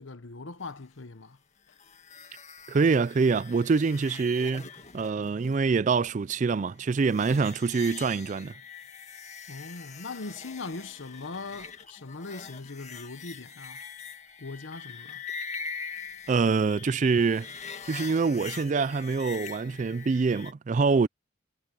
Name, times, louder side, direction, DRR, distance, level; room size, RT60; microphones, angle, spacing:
voice 1, 0.0-1.4 9.5-13.8 14.4-15.2, left 3 dB, 85° left, 1.1 m, -40 dB
sound 1, 1.7-20.5, left 6 dB, 40° left, 1.9 m, -43 dB
voice 2, 2.7-4.6 4.9-8.5 16.3-17.5 17.9-21.1, right 4 dB, 40° right, 0.4 m, -25 dB
head